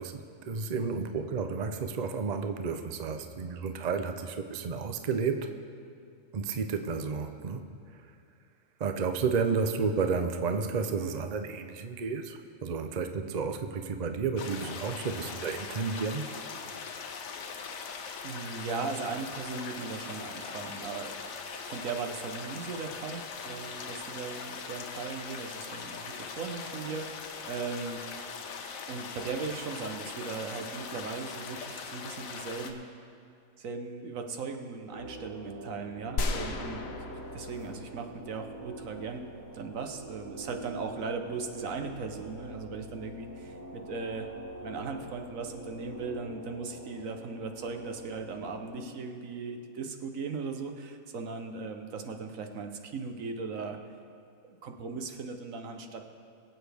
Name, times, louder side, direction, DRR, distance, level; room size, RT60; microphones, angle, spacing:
voice 1, 0.0-5.5 6.3-7.7 8.8-16.3, right 5 dB, 45° right, 6 dB, 0.6 m, -31 dB
sound 1, 14.4-32.7, left 5 dB, 80° left, 1.2 m, -41 dB
voice 2, 18.2-21.1 21.7-28.0 28.9-32.9 33.6-36.8 37.3-39.3 39.5-44.3 44.6-53.8 54.5-56.0, right 4 dB, 75° right, 5 dB, 1.3 m, -38 dB
sound 2, 34.9-48.8, right 1 dB, 90° right, 2.0 m, -45 dB
sound 3, 36.2-39.1, left 2 dB, 55° left, 1.0 m, -36 dB
23.0 x 8.1 x 3.4 m, 2.4 s
omnidirectional pair, 1.4 m